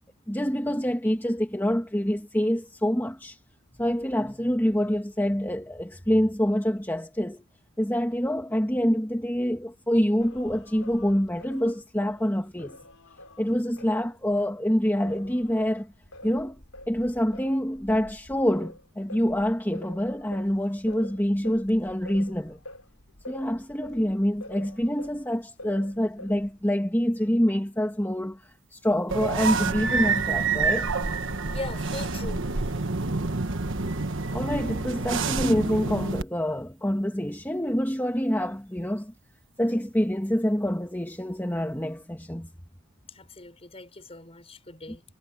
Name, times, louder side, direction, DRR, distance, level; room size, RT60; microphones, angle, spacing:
voice 1, 0.3-3.4 3.8-7.4 7.8-12.8 13.4-15.9 16.2-16.6 16.9-22.6 23.3-30.9 34.3-39.1 39.6-42.5, equal, 10° left, 2.0 m, -26 dB
Singing, 10.2-14.6 15.0-25.3 25.6-26.6, left 1 dB, 90° left, 4.5 m, -46 dB
sound 1, 29.1-36.2, right 4 dB, 60° right, 1.4 m, -27 dB
voice 2, 31.5-32.8 43.1-45.0, left 2 dB, 30° left, 5.4 m, -40 dB
head